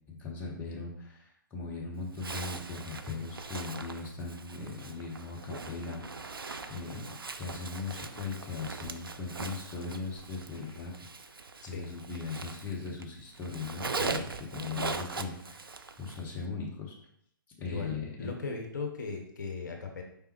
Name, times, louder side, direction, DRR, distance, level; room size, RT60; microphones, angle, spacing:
voice 1, 0.1-10.9 11.2-15.7 16.0-17.0 17.6-18.3, left 4 dB, 15° left, -3 dB, 0.8 m, -39 dB
Zipper (clothing), 2.1-13.1 13.3-16.3, right 4 dB, 80° right, 0.4 m, -40 dB
voice 2, 11.6-11.9 17.6-17.9 18.2-20.0, left 4 dB, 55° left, 3 dB, 0.8 m, -37 dB
4.9 x 3.5 x 3.0 m, 0.71 s
figure-of-eight pair, 125°, 12 cm